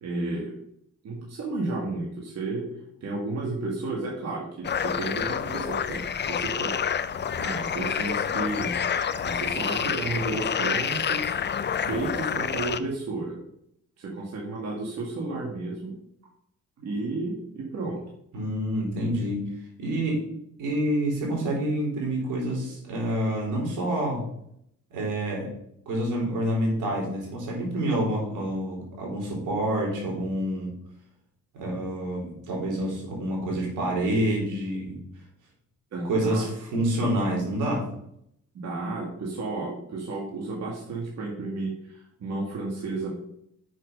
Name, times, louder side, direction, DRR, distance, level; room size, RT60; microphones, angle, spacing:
voice 1, 0.0-0.5 1.0-2.7 3.0-6.7 7.4-8.7 9.2-11.4 11.8-13.4 14.0-15.9 16.8-18.0 35.9-36.5 38.5-43.2, right 3 dB, 55° right, -3 dB, 2.2 m, -32 dB
sound 1, 4.6-12.8, left 7 dB, 35° left, 0.6 m, -28 dB
voice 2, 18.3-19.5 19.8-20.2 20.6-24.2 24.9-25.5 25.9-30.7 31.5-35.0 36.0-37.8, right 1 dB, 85° right, -2 dB, 3.7 m, -27 dB
6.4 x 6.1 x 5.2 m, 0.72 s
cardioid pair, 90°, 30 cm